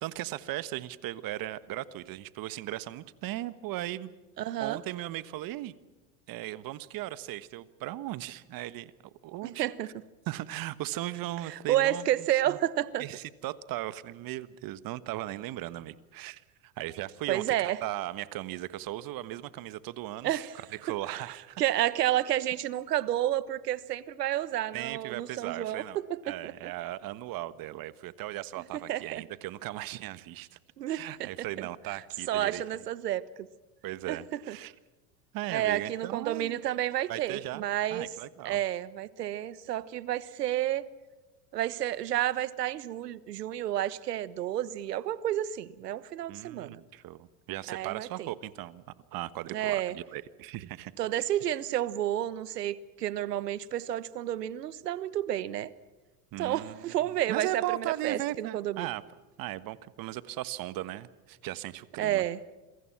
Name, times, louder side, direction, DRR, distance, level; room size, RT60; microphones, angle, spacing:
voice 1, 0.0-4.1 4.6-5.7 6.3-9.7 10.3-12.1 12.5-12.6 13.0-20.5 20.8-21.6 24.7-26.0 26.2-30.6 30.9-32.6 33.8-34.7 35.3-36.6 37.1-38.6 46.3-48.8 49.1-50.9 56.3-59.0 59.4-62.2, right 15 dB, 45° right, 15 dB, 1.5 m, -37 dB
voice 2, 4.4-4.8 9.4-9.9 11.5-13.0 17.3-17.8 20.2-20.6 21.1-21.2 21.6-25.8 26.1-26.5 28.9-29.2 30.8-31.3 31.6-31.7 32.3-33.5 34.1-34.6 35.5-38.1 38.4-40.8 41.5-46.8 47.7-48.3 49.5-49.9 51.0-55.7 56.4-58.9 62.0-62.4, right 12 dB, 85° right, 17 dB, 1.3 m, -30 dB
28.0 x 23.0 x 6.0 m, 1.1 s
hypercardioid pair, 95°, 47 cm